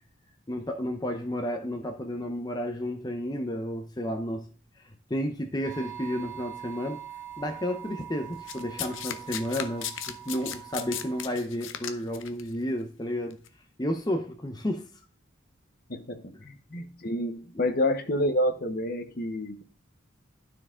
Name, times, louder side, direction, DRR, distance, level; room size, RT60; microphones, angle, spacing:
voice 1, 0.5-4.5 5.1-7.0 7.4-13.4 13.8-14.8, equal, 20° left, 4 dB, 0.7 m, -32 dB
sound 1, 5.6-11.2, right 11 dB, 40° right, 2.0 m, -43 dB
Domestic sounds home sounds, 8.5-12.4 13.3-13.5, left 10 dB, 75° left, 0.7 m, -36 dB
voice 2, 15.9-19.6, left 1 dB, 45° left, 8 dB, 0.9 m, -29 dB
12.0 x 4.7 x 3.7 m, 0.40 s
head